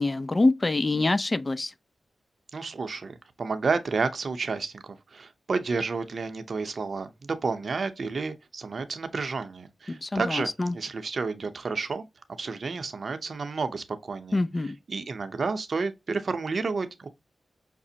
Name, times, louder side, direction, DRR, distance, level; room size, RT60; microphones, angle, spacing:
voice 1, 0.0-1.7 9.9-10.8 14.3-14.8, left 2 dB, 35° left, 0.4 m, -25 dB
voice 2, 2.5-12.1 12.4-14.4 14.9-17.1, right 4 dB, 60° right, 0.6 m, -31 dB
5.8 x 2.0 x 2.7 m
cardioid pair, 50°, 0 cm